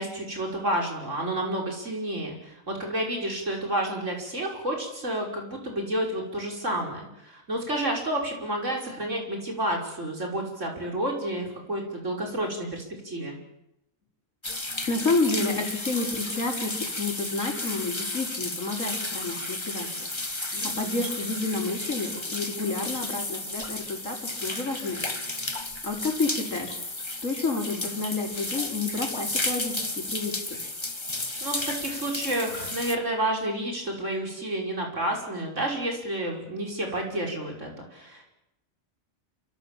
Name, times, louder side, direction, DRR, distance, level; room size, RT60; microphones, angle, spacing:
voice 1, 0.0-13.3 20.5-21.0 31.4-38.2, right 1 dB, 60° right, 1 dB, 6.2 m, -30 dB
sound 1, 14.4-33.0, left 2 dB, 20° left, 1.7 m, -33 dB
voice 2, 14.9-20.1 20.6-25.0 25.8-26.8 27.2-30.6, left 3 dB, 70° left, 1 dB, 5.4 m, -30 dB
27.5 x 25.5 x 7.5 m, 0.85 s
omnidirectional pair, 1.4 m